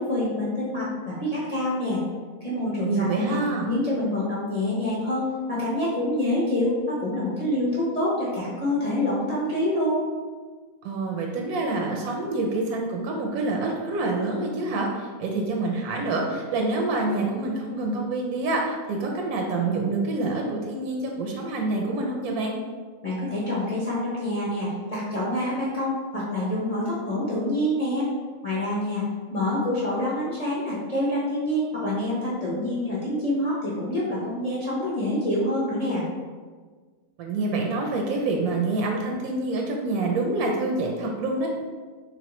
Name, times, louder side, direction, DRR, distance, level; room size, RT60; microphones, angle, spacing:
voice 1, 0.0-2.0 2.4-3.4 3.7-10.0 23.0-28.1 28.4-29.0 29.3-36.0, left 1 dB, 35° left, -8 dB, 0.6 m, -26 dB
voice 2, 2.8-3.7 10.8-22.6 37.2-41.5, right 2 dB, 80° right, 0 dB, 1.1 m, -27 dB
3.6 x 3.1 x 2.9 m, 1.5 s
omnidirectional pair, 1.6 m